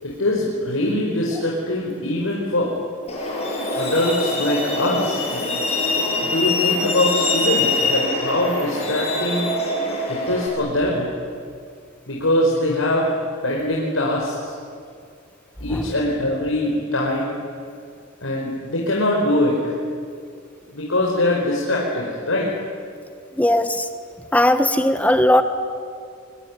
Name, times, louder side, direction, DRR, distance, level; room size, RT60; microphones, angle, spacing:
voice 1, 0.0-2.7 3.3-3.4 3.7-5.4 6.2-9.5 10.1-11.1 12.1-13.1 13.4-14.5 15.6-17.3 18.2-19.7 20.7-22.5, left 1 dB, 90° left, -3 dB, 5.0 m, -22 dB
Truck, 3.1-10.5, left 2 dB, 30° left, 7.5 m, -24 dB
voice 2, 23.3-23.9 24.3-25.4, left 1 dB, 10° left, 9 dB, 1.4 m, -17 dB
24.5 x 24.0 x 9.8 m, 2.3 s
head